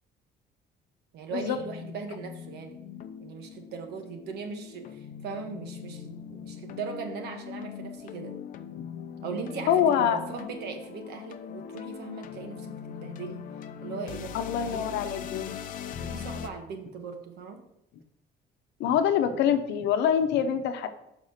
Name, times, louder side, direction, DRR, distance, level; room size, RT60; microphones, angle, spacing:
voice 1, 1.1-2.8 3.2-8.4 9.2-13.4 13.8-14.3 14.7-15.0 16.0-17.6, right 5 dB, 70° right, 5 dB, 1.2 m, -39 dB
sound 1, 1.6-16.5, left 8 dB, 50° left, 0.5 m, -41 dB
voice 2, 9.7-10.2 14.3-15.5 18.8-20.9, left 9 dB, 85° left, 8 dB, 0.8 m, -25 dB
5.8 x 5.3 x 6.4 m, 0.82 s
cardioid pair, 160°, 18 cm